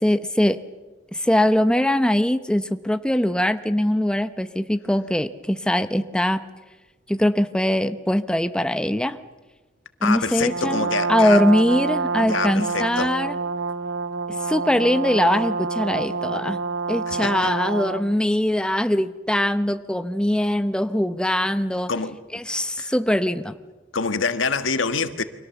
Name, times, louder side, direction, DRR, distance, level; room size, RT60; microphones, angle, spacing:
voice 1, 0.0-0.6 1.1-6.4 7.1-9.2 10.0-13.4 14.4-16.6 16.9-21.9 22.3-23.6, left 1 dB, 5° left, 0.8 m, -22 dB
voice 2, 10.0-11.4 12.2-13.1 17.1-17.5 21.9-22.2 22.8-22.9 23.9-25.2, left 4 dB, 90° left, 1.5 m, -26 dB
Brass instrument, 10.4-18.1, right 4 dB, 85° right, 0.8 m, -27 dB
29.5 x 24.5 x 7.0 m
head